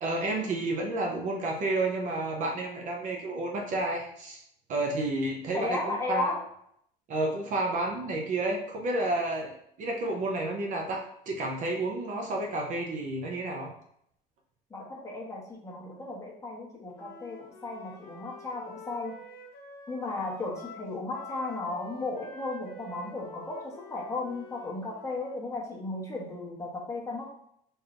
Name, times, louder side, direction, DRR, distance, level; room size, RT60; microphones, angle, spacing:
voice 1, 0.0-4.4 4.7-6.3 7.1-9.5 9.8-13.7, right 2 dB, 45° right, 1 dB, 0.7 m, -30 dB
voice 2, 5.5-6.4 14.7-19.2 19.9-27.2, left 2 dB, 15° left, -4 dB, 1.1 m, -35 dB
Wind instrument woodwind instrument, 16.9-25.4, left 3 dB, 55° left, 1.0 m, -48 dB
4.4 x 3.2 x 2.5 m, 0.70 s
cardioid pair, 140°, 19 cm